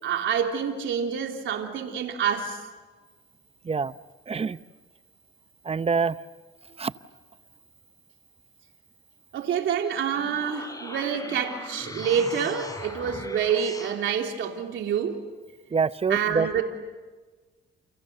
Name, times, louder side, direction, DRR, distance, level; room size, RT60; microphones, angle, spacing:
voice 1, 0.0-2.6 9.3-15.2 16.1-16.6, right 7 dB, 75° right, 3 dB, 3.3 m, -27 dB
voice 2, 4.3-4.6 5.6-6.2 6.8-6.9 15.7-16.6, right 5 dB, 30° right, 14 dB, 0.9 m, -25 dB
sound 1, 10.2-14.0, left 2 dB, 20° left, 5.5 m, -39 dB
29.5 x 29.0 x 6.8 m, 1.3 s
cardioid pair, 90°, 20 cm